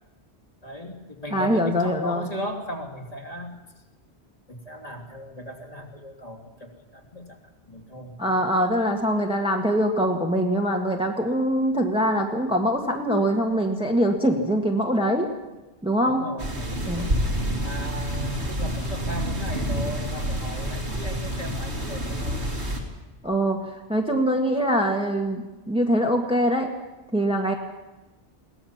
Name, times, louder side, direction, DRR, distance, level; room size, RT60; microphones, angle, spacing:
voice 1, 0.6-3.5 4.5-7.4 7.7-8.1 16.0-17.1 17.6-22.4, equal, 35° left, 1 dB, 3.2 m, -37 dB
voice 2, 1.3-2.3 8.2-15.3 15.8-16.3 16.9-17.1 23.2-23.6 23.9-26.7 27.1-27.5, equal, 5° right, 2 dB, 1.8 m, -23 dB
sound 1, 16.4-22.8, equal, 80° right, 3.6 m, -28 dB
22.0 x 18.0 x 7.3 m, 1.1 s
omnidirectional pair, 1.1 m